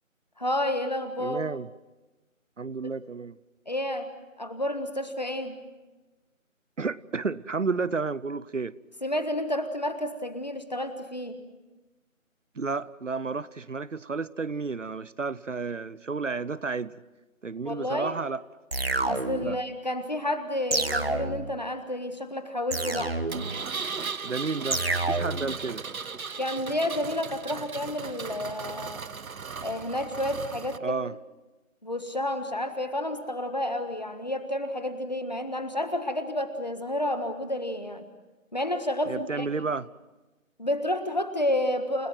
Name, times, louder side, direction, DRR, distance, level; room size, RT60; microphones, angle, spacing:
voice 1, 0.4-1.4 3.7-4.1 4.4-5.6 9.0-11.4 17.6-18.1 19.0-23.2 26.4-29.0 29.6-31.0 31.8-38.1 38.5-39.5 40.6-42.1, left 1 dB, 30° left, 1.6 m, -30 dB
voice 2, 1.2-1.7 2.6-3.4 6.8-8.7 12.5-17.0 17.4-18.4 19.4-19.6 24.2-25.8 30.8-31.1 39.1-39.9, right 4 dB, 65° right, 0.8 m, -31 dB
sound 1, 18.7-19.6 20.7-21.6 22.7-23.6 24.7-25.6, right 2 dB, 45° right, 1.2 m, -28 dB
Engine, 23.3-30.8, right 5 dB, 90° right, 0.9 m, -37 dB
29.5 x 18.0 x 7.7 m
figure-of-eight pair, 180°, 41 cm